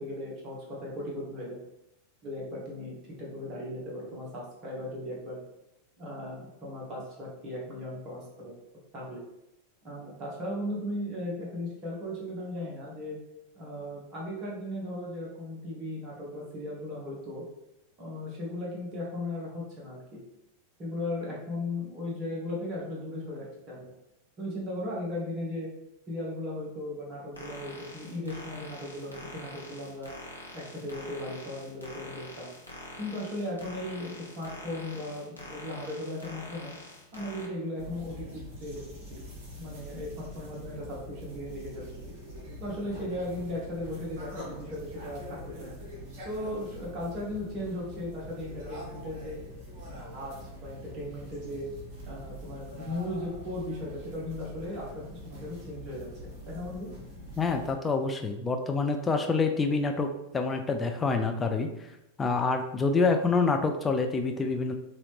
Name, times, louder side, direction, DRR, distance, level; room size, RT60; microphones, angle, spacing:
voice 1, 0.0-1.6 2.2-5.4 6.0-8.5 8.9-9.2 9.8-13.2 13.5-17.4 18.0-20.2 20.8-23.9 24.4-25.7 26.1-30.1 30.5-32.5 33.0-36.7 37.1-38.8 39.1-39.2 39.6-41.9 42.6-45.8 46.2-49.4 49.8-51.7 52.1-56.1 56.5-56.9, left 1 dB, 30° right, -4 dB, 1.4 m, -37 dB
sound 1, 27.3-37.5, left 1 dB, 80° left, 0.8 m, -45 dB
sound 2, 37.8-57.7, equal, 45° right, 1.2 m, -44 dB
voice 2, 57.4-61.7 62.2-64.7, left 4 dB, 15° left, 4 dB, 0.4 m, -27 dB
3.9 x 2.8 x 3.1 m, 0.87 s
figure-of-eight pair, 90°, 0 cm